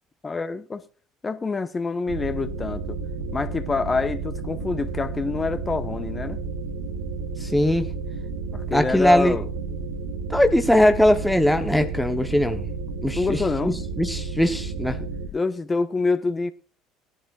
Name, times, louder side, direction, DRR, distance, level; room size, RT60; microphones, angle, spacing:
voice 1, 0.2-0.8 1.2-3.0 3.3-6.4 8.5-9.5 9.9-10.0 13.1-13.8 15.0-16.5, left 4 dB, 25° left, 1.3 m, -26 dB
sound 1, 2.1-15.3, right 4 dB, 70° right, 1.3 m, -32 dB
voice 2, 7.4-7.9 8.7-9.4 10.3-12.7 13.0-15.0, left 1 dB, 5° left, 1.1 m, -20 dB
18.5 x 11.0 x 2.5 m
hypercardioid pair, 60°, 0 cm